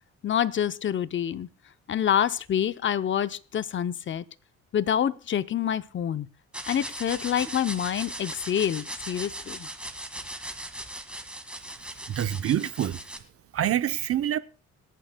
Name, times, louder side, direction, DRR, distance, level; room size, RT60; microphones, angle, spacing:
voice 1, 0.2-1.5 1.9-4.2 4.7-6.3 6.7-9.7, left 9 dB, 40° left, 0.6 m, -27 dB
sound 1, 6.5-13.2, right 1 dB, 5° right, 1.7 m, -38 dB
voice 2, 12.1-13.0 13.5-14.4, right 11 dB, 50° right, 0.7 m, -26 dB
26.5 x 9.1 x 2.2 m
cardioid pair, 90°, 30 cm